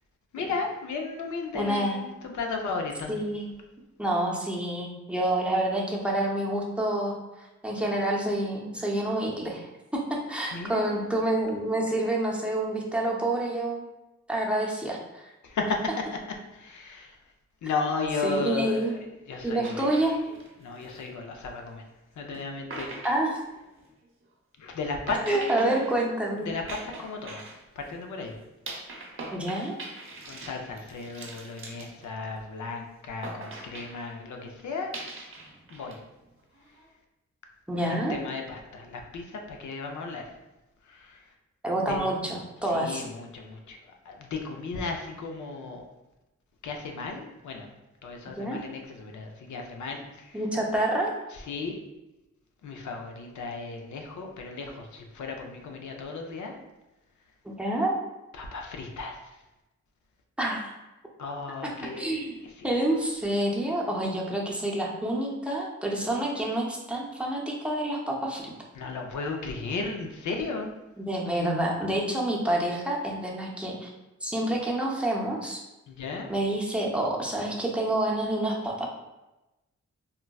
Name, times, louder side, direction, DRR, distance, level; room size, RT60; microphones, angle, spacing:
voice 1, 0.3-3.1 10.5-11.0 15.4-16.2 16.5-17.2 17.6-19.0 19.3-20.1 20.6-21.8 22.2-22.9 24.6-25.2 25.5-25.8 26.5-27.4 27.8-28.4 30.2-34.9 35.7-36.0 37.8-40.3 40.8-41.2 41.9-42.0 42.6-45.8 46.6-47.7 48.0-50.4 51.3-51.8 52.6-56.6 58.3-59.4 61.2-62.8 68.7-70.7 75.9-76.3, left 4 dB, 75° left, 2 dB, 0.5 m, -35 dB
voice 2, 1.5-2.0 3.1-3.5 4.0-7.2 7.6-13.8 14.3-15.3 18.2-18.9 19.4-20.2 23.0-23.4 25.3-26.5 29.3-29.7 37.7-38.2 41.6-43.0 48.4-48.6 50.3-51.1 57.4-57.9 60.4-60.7 61.6-62.4 62.6-68.4 71.0-73.9 74.2-75.6 76.3-78.9, right 1 dB, 5° right, -3 dB, 0.6 m, -28 dB
sound 1, 19.6-21.4 22.3-22.4 22.7-24.0 25.1-28.0 28.7-32.6 33.2-34.1 34.9-35.9 36.2-36.8, right 2 dB, 45° right, 0.7 m, -42 dB
3.8 x 2.1 x 2.2 m, 1.0 s
cardioid pair, 75°, 30 cm